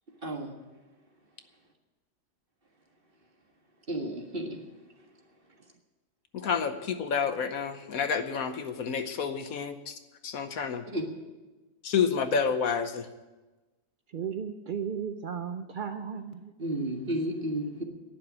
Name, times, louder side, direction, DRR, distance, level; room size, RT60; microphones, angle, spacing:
voice 1, 0.2-0.5 3.9-4.6 10.9-11.0 16.6-17.8, right 1 dB, 35° right, 2 dB, 1.9 m, -32 dB
voice 2, 6.3-9.9 10.2-10.8 11.8-13.1, left 6 dB, 65° left, 9 dB, 1.3 m, -29 dB
voice 3, 14.1-16.5, right 7 dB, 85° right, 8 dB, 0.4 m, -35 dB
11.5 x 9.1 x 9.9 m, 1.2 s
omnidirectional pair, 1.7 m